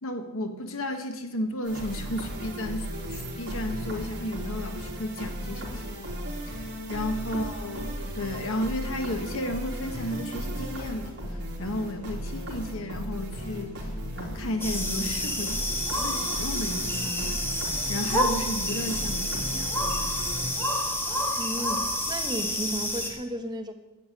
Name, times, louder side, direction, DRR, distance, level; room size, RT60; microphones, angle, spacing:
voice 1, 0.0-6.0 6.5-11.2 11.6-13.8 14.1-15.6 15.9-17.4 17.9-19.9, left 1 dB, 65° left, 7 dB, 1.5 m, -33 dB
sound 1, 1.6-20.5, equal, 50° right, 3.8 m, -35 dB
sound 2, 14.6-23.1, left 1 dB, 10° left, 1.8 m, -29 dB
voice 2, 21.4-23.7, equal, 20° right, 6 dB, 1.1 m, -34 dB
12.0 x 8.4 x 9.7 m, 1.1 s
head